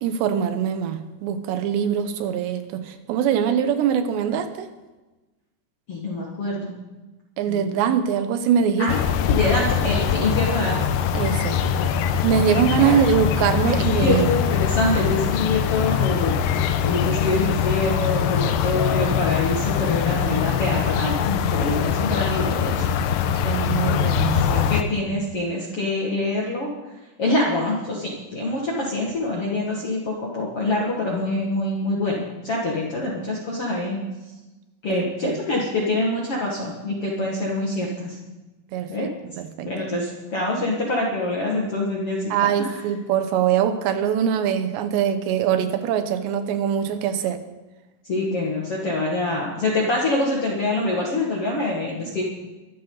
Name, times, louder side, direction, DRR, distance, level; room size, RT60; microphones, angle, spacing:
voice 1, 0.0-4.7 7.4-8.9 11.1-11.7 12.1-14.3 23.4-24.7 25.1-25.2 34.9-35.4 38.7-39.1 39.4-39.9 42.3-47.4 52.0-52.2, right 8 dB, 90° right, 9 dB, 3.3 m, -23 dB
voice 2, 5.9-6.7 7.5-7.8 8.8-9.0 9.3-10.8 11.6-11.9 12.5-13.0 13.6-16.4 16.8-22.9 24.3-26.7 27.2-34.0 34.8-38.2 38.9-39.1 39.6-42.3 42.6-42.7 48.1-52.2, left 2 dB, 45° left, -3 dB, 2.3 m, -25 dB
sound 1, 8.9-24.8, left 8 dB, 90° left, 2.9 m, -22 dB
23.0 x 12.0 x 4.0 m, 1.1 s
omnidirectional pair, 4.9 m